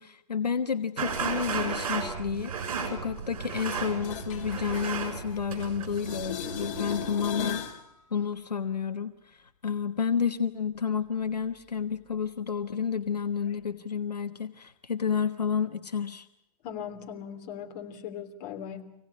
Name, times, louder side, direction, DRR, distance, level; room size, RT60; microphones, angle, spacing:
voice 1, 0.0-2.5 2.9-7.8 8.1-16.3, left 7 dB, 90° left, 8 dB, 1.3 m, -30 dB
sound 1, 1.0-7.3, right 6 dB, 60° right, 6.6 m, -34 dB
sound 2, 3.6-5.6 5.9-7.8 13.5-13.6, left 8 dB, 55° left, 3.3 m, -37 dB
voice 2, 16.6-18.9, left 8 dB, 40° left, 3 dB, 3.3 m, -39 dB
26.0 x 17.5 x 9.7 m, 0.82 s
hypercardioid pair, 120°, 20 cm